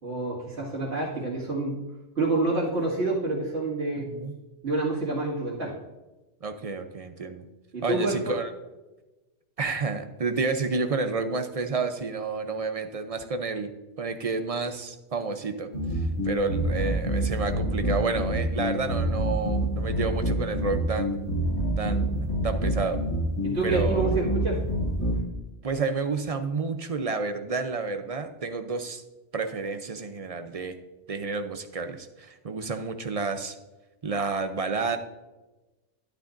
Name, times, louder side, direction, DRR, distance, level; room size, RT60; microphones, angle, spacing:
voice 1, 0.0-1.8 2.2-4.1 4.6-5.8 7.7-8.4 23.4-24.6, right 2 dB, 65° right, -8 dB, 2.6 m, -28 dB
voice 2, 4.0-4.3 6.4-7.4 7.8-8.5 9.6-13.7 14.0-15.7 16.2-21.2 21.8-23.0 23.6-24.0 25.6-29.0 29.3-30.8 31.1-33.6 34.0-35.0, right 4 dB, 40° right, 8 dB, 0.6 m, -30 dB
sound 1, 15.7-25.2, right 1 dB, 65° left, 3.2 m, -27 dB
11.5 x 9.9 x 2.6 m, 1.1 s
omnidirectional pair, 1.2 m